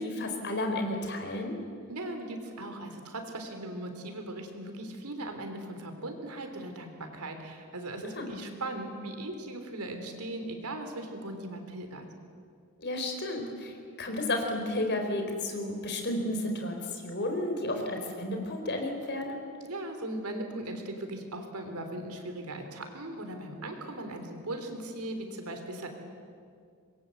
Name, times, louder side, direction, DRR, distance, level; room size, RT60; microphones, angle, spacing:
voice 1, 0.0-1.6 8.1-8.3 12.8-19.4, left 1 dB, 50° left, 4 dB, 4.1 m, -32 dB
voice 2, 1.9-12.1 19.6-25.9, right 1 dB, 85° right, 5 dB, 3.6 m, -38 dB
25.5 x 22.0 x 8.0 m, 2.2 s
head